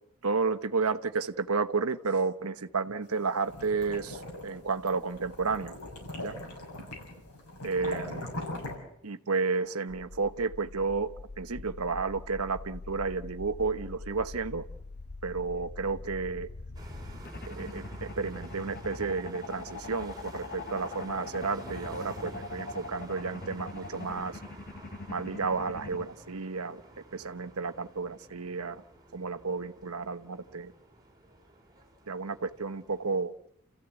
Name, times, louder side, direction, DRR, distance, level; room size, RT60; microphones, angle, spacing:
voice 1, 0.2-5.8 6.2-6.4 7.6-8.2 9.0-11.1 11.4-14.6 15.2-16.5 17.5-24.4 25.1-26.8 27.1-28.8 29.1-30.7 32.1-33.3, right 4 dB, 75° right, 9 dB, 1.1 m, -32 dB
sound 1, 3.2-8.7, left 1 dB, 90° left, 6.8 m, -40 dB
sound 2, 9.9-26.0, left 3 dB, 45° left, 0.9 m, -43 dB
sound 3, 16.7-33.2, right 1 dB, 20° right, 4.1 m, -49 dB
30.0 x 15.0 x 8.1 m, 0.74 s
head